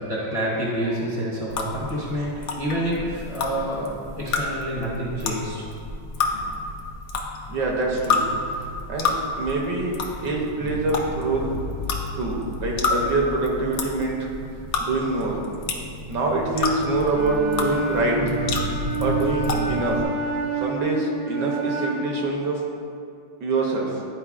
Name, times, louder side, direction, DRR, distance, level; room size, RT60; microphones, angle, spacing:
voice 1, 0.0-3.9 4.2-5.6 6.2-6.5, equal, 30° left, -7 dB, 0.6 m, -28 dB
sound 1, 1.5-20.0, left 3 dB, 70° left, 0.8 m, -29 dB
voice 2, 7.5-8.2 8.9-10.0 10.2-11.5 12.2-14.2 14.8-15.4 16.1-18.4 19.0-20.0 20.6-22.6 23.4-24.0, right 2 dB, 65° right, -1 dB, 1.3 m, -25 dB
Wind instrument woodwind instrument, 17.1-22.2, right 4 dB, 90° right, 1.6 m, -28 dB
11.0 x 4.3 x 2.4 m, 2.3 s
omnidirectional pair, 2.2 m